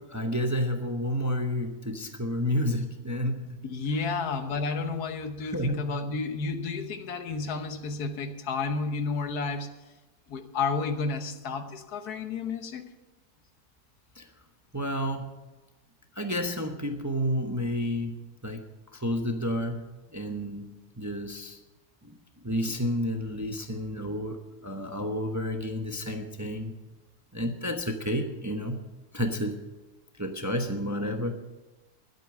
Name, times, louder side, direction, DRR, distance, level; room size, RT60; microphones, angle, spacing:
voice 1, 0.1-3.6 5.4-5.8 14.1-14.3 14.7-15.3 16.1-18.6 18.9-19.8 20.1-21.6 22.0-22.2 22.4-26.8 27.3-28.8 29.1-29.6 30.2-31.4, equal, 15° right, 5 dB, 0.7 m, -30 dB
voice 2, 3.6-9.7 10.3-12.9, left 4 dB, 80° left, 8 dB, 1.6 m, -31 dB
12.0 x 8.3 x 7.7 m, 1.1 s
omnidirectional pair, 1.6 m